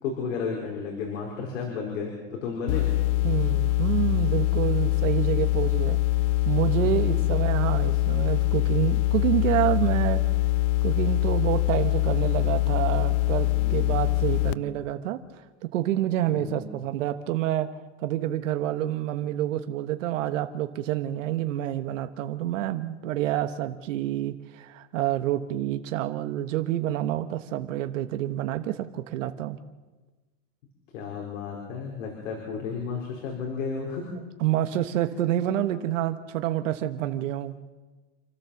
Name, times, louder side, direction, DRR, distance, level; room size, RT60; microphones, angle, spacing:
voice 1, 0.0-2.9 6.8-6.9 13.5-13.9 14.2-14.6 16.3-16.6 30.9-34.1, left 5 dB, 85° left, 0 dB, 4.8 m, -33 dB
sound 1, 2.7-14.5, left 18 dB, 65° left, 0.5 m, -24 dB
voice 2, 3.2-6.0 6.4-10.2 10.8-15.2 15.7-17.7 18.0-29.6 34.4-37.5, right 13 dB, 85° right, 8 dB, 1.3 m, -28 dB
29.0 x 13.0 x 7.2 m, 1.3 s
supercardioid pair, 170°, 37 cm